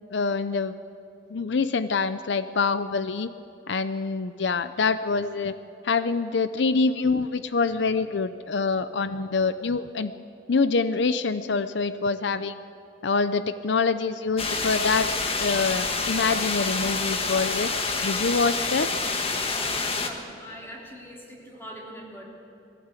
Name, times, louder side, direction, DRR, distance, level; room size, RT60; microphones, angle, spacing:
voice 1, 0.1-0.8 1.3-3.3 3.7-5.5 5.8-10.1 10.5-12.6 13.0-15.1 15.4-17.7 18.0-18.9, left 4 dB, 80° left, 12 dB, 0.6 m, -25 dB
sound 1, 14.4-20.1, left 4 dB, 35° left, 1.4 m, -27 dB
voice 2, 19.5-22.2, equal, 15° left, -2 dB, 3.5 m, -42 dB
20.5 x 15.5 x 8.3 m, 2.8 s
head